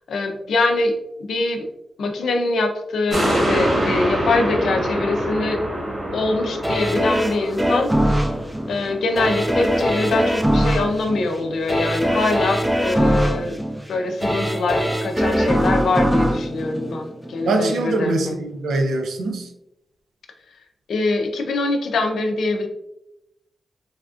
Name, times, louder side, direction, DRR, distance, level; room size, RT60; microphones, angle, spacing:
voice 1, 0.1-0.9 1.2-1.7 2.0-5.6 6.1-8.3 8.7-13.5 13.9-18.3 20.9-22.7, left 3 dB, 80° left, 4 dB, 0.4 m, -23 dB
sound 1, 3.1-9.8 10.2-10.3, equal, 45° right, 1.2 m, -25 dB
sound 2, 6.6-17.6 18.0-18.1, equal, 10° right, 0.5 m, -22 dB
voice 2, 17.4-19.5, right 2 dB, 90° right, 4 dB, 0.4 m, -23 dB
3.3 x 2.3 x 2.4 m, 0.86 s
cardioid pair, 50°, 0 cm